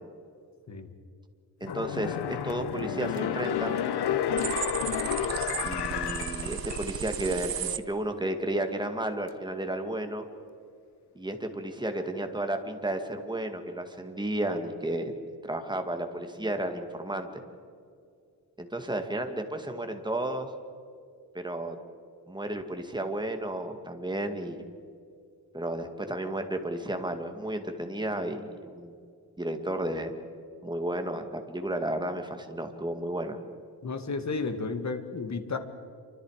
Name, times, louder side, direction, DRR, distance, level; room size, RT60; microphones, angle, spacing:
sound 1, 1.6-7.2 7.6-7.7, left 9 dB, 80° left, 1.0 m, -31 dB
voice 1, 1.6-3.8 5.6-10.2 11.1-15.1 15.4-17.3 18.6-20.5 21.3-21.8 22.3-24.7 25.5-28.9 29.4-30.1 30.6-33.4, right 1 dB, 10° right, 5 dB, 2.1 m, -32 dB
sound 2, 4.4-7.8, right 9 dB, 60° right, 0.9 m, -34 dB
voice 2, 33.8-35.6, left 4 dB, 45° left, 8 dB, 2.0 m, -32 dB
28.0 x 25.0 x 5.0 m, 2.3 s
wide cardioid pair, 125°, 39 cm